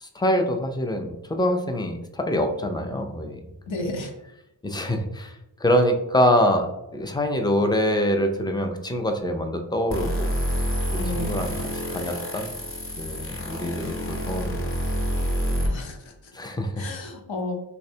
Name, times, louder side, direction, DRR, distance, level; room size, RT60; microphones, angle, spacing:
voice 1, 0.0-3.4 3.7-3.9 4.6-10.3 10.9-12.5 13.0-14.7 16.3-16.9, equal, 10° left, 5 dB, 0.3 m, -25 dB
voice 2, 3.7-4.1 11.0-11.7 15.7-16.3 16.8-17.5, left 2 dB, 70° left, 2 dB, 0.8 m, -33 dB
sound 1, 9.9-15.7, equal, 30° left, 0.8 m, -28 dB
3.3 x 3.1 x 2.7 m, 0.88 s
wide cardioid pair, 85°, 47 cm